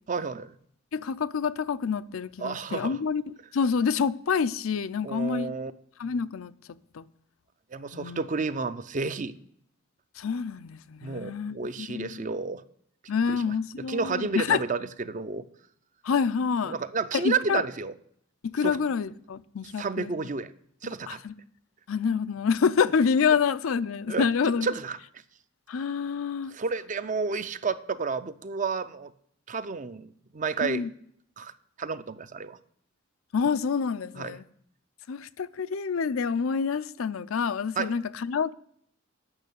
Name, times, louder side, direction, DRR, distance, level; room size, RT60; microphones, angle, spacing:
voice 1, 0.1-0.5 2.4-3.0 5.0-5.7 7.7-9.4 11.0-12.6 13.2-13.4 13.8-15.4 16.6-17.9 18.6-18.8 19.8-20.5 20.8-21.2 24.1-24.3 24.6-25.0 26.5-29.1 29.5-30.8 31.4-31.5 31.8-32.6 34.2-34.4 37.8-37.9, right 4 dB, 40° right, 0.5 m, -31 dB
voice 2, 0.9-3.2 3.5-5.5 6.0-6.5 6.9-7.0 7.9-8.2 10.2-12.2 13.1-14.6 16.0-16.8 17.2-17.6 18.5-20.1 21.1-21.3 21.9-24.7 25.7-26.5 30.6-30.9 33.3-34.4 35.1-38.5, left 6 dB, 90° left, 0.5 m, -27 dB
8.9 x 6.3 x 8.1 m
head